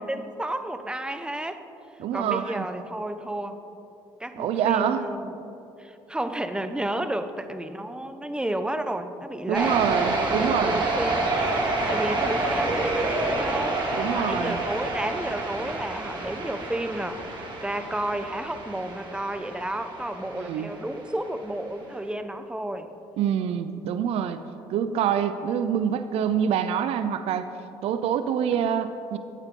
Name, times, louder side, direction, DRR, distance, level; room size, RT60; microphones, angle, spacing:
voice 1, 0.0-1.6 2.1-3.6 4.2-5.4 5.8-9.9 10.2-13.8 14.1-22.9, right 1 dB, 10° right, 9 dB, 0.9 m, -32 dB
voice 2, 2.0-2.6 4.4-5.1 9.5-10.8 13.9-14.6 20.3-20.7 23.2-24.4 24.7-27.5 27.8-29.2, right 8 dB, 70° right, 11 dB, 0.6 m, -26 dB
sound 1, 9.5-21.0, right 2 dB, 45° right, 2.4 m, -28 dB
15.5 x 8.9 x 3.8 m, 2.8 s
supercardioid pair, 65°, 11 cm